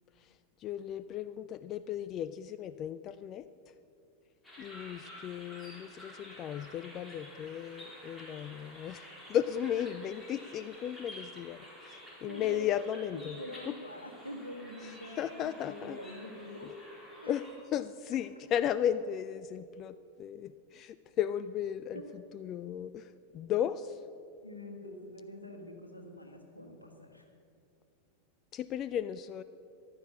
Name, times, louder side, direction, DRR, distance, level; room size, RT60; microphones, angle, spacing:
voice 1, 0.6-3.5 4.6-13.4 13.7-13.8 14.8-16.0 17.3-17.4 17.7-23.9 28.5-29.4, left 10 dB, 35° left, 15 dB, 0.3 m, -35 dB
sound 1, 4.4-17.5, equal, 10° left, 3.7 m, -50 dB
voice 2, 12.2-12.7 13.0-16.7 17.2-17.3 21.9-22.0 24.4-27.3, left 1 dB, 85° left, 3 dB, 1.6 m, -45 dB
14.5 x 11.5 x 5.8 m, 2.5 s
figure-of-eight pair, 90°, 0 cm